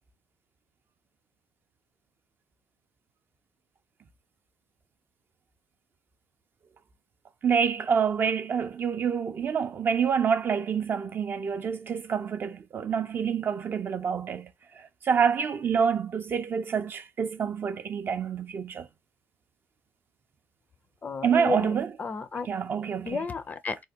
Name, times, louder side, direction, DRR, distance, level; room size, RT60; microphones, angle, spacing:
voice 1, 7.4-14.5 14.8-18.9 21.2-21.9 22.5-23.2, right 7 dB, 40° right, 0.4 m, -27 dB
voice 2, 21.0-22.5 23.0-23.8, left 4 dB, 30° left, 0.4 m, -33 dB
3.4 x 2.1 x 2.7 m
supercardioid pair, 90°, 6 cm